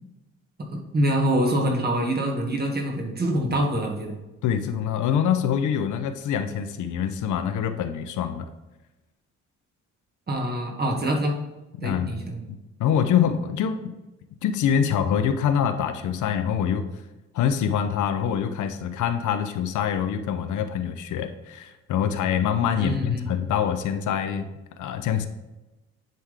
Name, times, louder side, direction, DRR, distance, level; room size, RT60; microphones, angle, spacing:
voice 1, 0.6-4.2 10.3-11.3 11.8-12.4 22.8-23.4, right 1 dB, 35° right, 0 dB, 1.7 m, -25 dB
voice 2, 4.4-8.5 11.8-12.1 12.5-13.9 14.4-16.9 17.3-25.3, left 8 dB, 75° left, 9 dB, 0.7 m, -25 dB
10.0 x 3.7 x 3.3 m, 1.0 s
cardioid pair, 90°, 30 cm